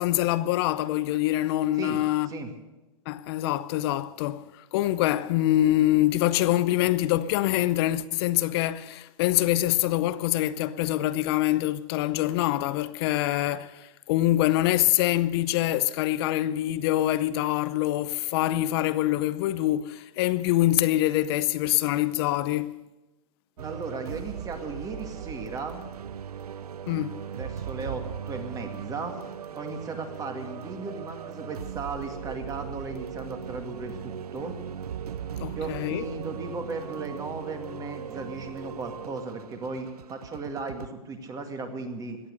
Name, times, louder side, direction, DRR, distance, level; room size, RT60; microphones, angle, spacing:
voice 1, 0.0-2.3 3.1-22.7 26.9-27.2 35.4-36.0, left 15 dB, 45° left, 0.6 m, -25 dB
voice 2, 23.6-25.8 27.3-29.2 29.5-34.5 35.5-42.2, right 3 dB, 20° right, 2.2 m, -36 dB
sound 1, 23.6-40.9, right 8 dB, 85° right, 0.6 m, -38 dB
17.5 x 11.0 x 6.7 m
hypercardioid pair, 120°, 19 cm